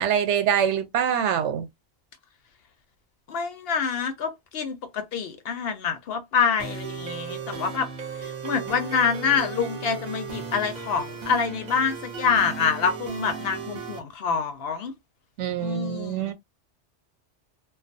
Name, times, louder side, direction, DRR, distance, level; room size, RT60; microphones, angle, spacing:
voice 1, 0.0-1.7 15.4-16.3, right 8 dB, 75° right, 0.9 m, -24 dB
voice 2, 3.3-7.9 8.4-14.9 15.6-16.3, left 6 dB, 65° left, 0.7 m, -26 dB
sound 1, 6.6-14.0, right 5 dB, 45° right, 0.8 m, -36 dB
2.4 x 2.3 x 2.5 m
omnidirectional pair, 1.2 m